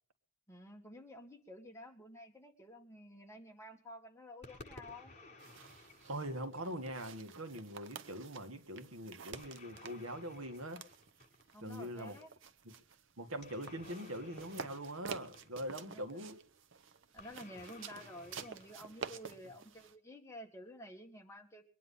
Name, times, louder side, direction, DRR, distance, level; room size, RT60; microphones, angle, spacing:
voice 1, 0.5-5.1 11.5-12.3 15.8-16.2 17.1-21.6, left 1 dB, 15° left, 3 dB, 1.8 m, -52 dB
sound 1, 4.4-7.1 9.3-11.7 13.3-15.8 17.2-19.6, left 2 dB, 30° left, 7.9 m, -56 dB
sound 2, 5.4-19.9, right 5 dB, 60° right, 0.9 m, -51 dB
voice 2, 6.1-10.8 11.6-12.2 12.7-12.8 13.2-16.4, right 1 dB, 75° right, 7 dB, 1.9 m, -43 dB
23.0 x 10.0 x 5.6 m, 0.44 s
head